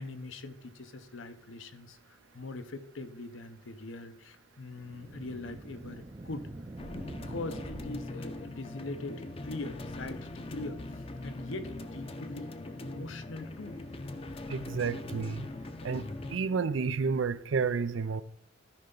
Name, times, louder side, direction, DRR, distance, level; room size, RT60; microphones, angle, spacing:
voice 1, 0.0-6.5 6.9-12.5 12.8-13.8, left 2 dB, 80° left, 0.8 m, -42 dB
sound 1, 4.7-8.5, right 2 dB, 25° right, 0.5 m, -45 dB
sound 2, 6.8-16.4, left 2 dB, 30° left, 0.6 m, -41 dB
voice 2, 14.5-15.5 15.8-18.2, right 5 dB, 75° right, 0.5 m, -31 dB
13.5 x 5.6 x 3.9 m
head